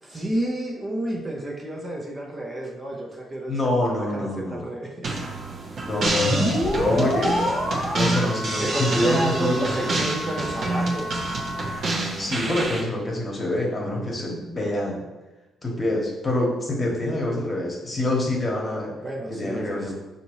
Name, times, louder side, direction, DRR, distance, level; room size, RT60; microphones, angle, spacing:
voice 1, 0.0-5.1 8.6-11.1 19.0-19.9, right 1 dB, 25° right, -1 dB, 0.5 m, -30 dB
voice 2, 3.5-4.6 5.8-7.4 7.9-9.9 12.2-15.0 15.6-18.9 19.3-19.9, left 1 dB, 25° left, -2 dB, 1.1 m, -26 dB
sound 1, 5.0-12.8, right 2 dB, 60° right, 0.8 m, -28 dB
sound 2, 6.1-11.8, left 1 dB, 5° left, 0.8 m, -27 dB
5.1 x 2.7 x 3.0 m, 1.1 s
cardioid pair, 100°, 0 cm